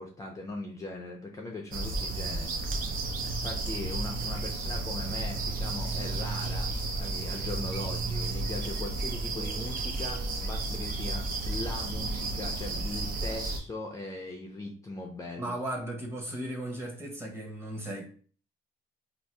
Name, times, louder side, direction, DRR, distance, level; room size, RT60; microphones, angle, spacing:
voice 1, 0.0-2.5 3.2-6.7 7.0-15.5, left 2 dB, 20° left, 0.5 m, -39 dB
sound 1, 1.7-13.6, right 3 dB, 55° right, 0.6 m, -32 dB
voice 2, 15.4-18.0, right 1 dB, 15° right, 1.0 m, -36 dB
2.7 x 2.4 x 3.2 m
cardioid pair, 110°, 17 cm